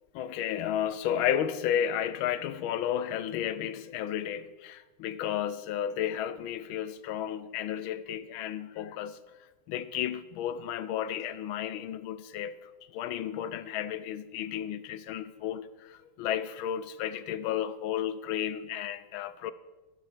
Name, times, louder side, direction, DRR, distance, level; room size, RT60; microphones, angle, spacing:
voice 1, 0.1-9.2 9.7-12.5 12.9-19.5, left 10 dB, 75° left, 1.3 m, -32 dB
12.0 x 11.5 x 4.4 m
omnidirectional pair, 2.4 m